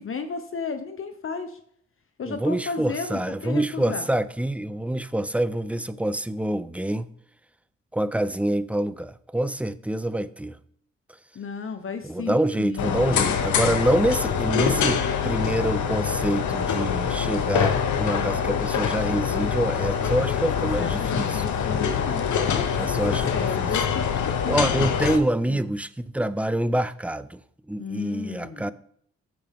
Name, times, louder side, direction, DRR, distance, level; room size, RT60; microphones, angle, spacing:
voice 1, 0.0-1.6 2.2-4.1 11.3-13.2 18.1-18.4 20.6-24.9 25.5-25.7 27.8-28.7, left 5 dB, 45° left, 0.9 m, -34 dB
voice 2, 2.3-7.1 7.9-10.6 12.0-21.5 22.7-23.7 24.5-27.4 27.7-28.7, right 1 dB, 5° right, 0.5 m, -26 dB
sound 1, 12.8-25.2, left 7 dB, 80° left, 1.0 m, -25 dB
14.0 x 4.7 x 3.6 m
cardioid pair, 65°, 29 cm